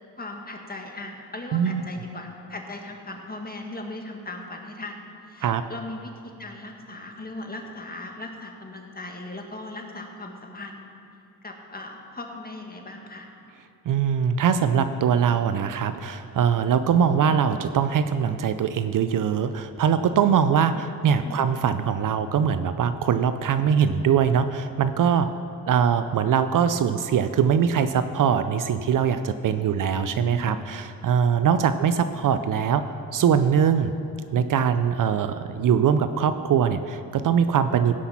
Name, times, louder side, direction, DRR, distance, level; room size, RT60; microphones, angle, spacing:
voice 1, 0.2-6.1 6.4-10.8 11.4-13.3 20.7-21.4 29.5-30.5, left 2 dB, 25° left, 2 dB, 1.9 m, -38 dB
voice 2, 13.9-25.3 25.7-32.8 33.1-33.9 34.3-38.0, right 7 dB, 55° right, 11 dB, 0.6 m, -22 dB
16.0 x 5.8 x 5.8 m, 2.7 s
supercardioid pair, 60°, 39 cm